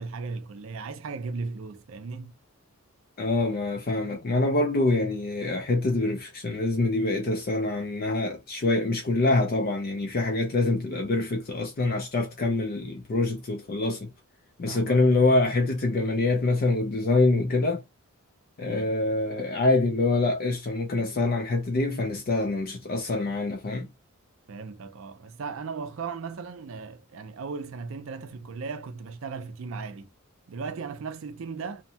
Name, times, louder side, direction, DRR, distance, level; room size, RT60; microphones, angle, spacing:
voice 1, 0.0-2.4 14.7-15.0 18.6-18.9 24.5-30.1 30.5-31.8, right 4 dB, 65° right, 0.4 m, -37 dB
voice 2, 3.2-14.1 14.6-17.8 18.6-23.9, left 2 dB, 40° left, 0.4 m, -25 dB
2.7 x 2.1 x 2.7 m
head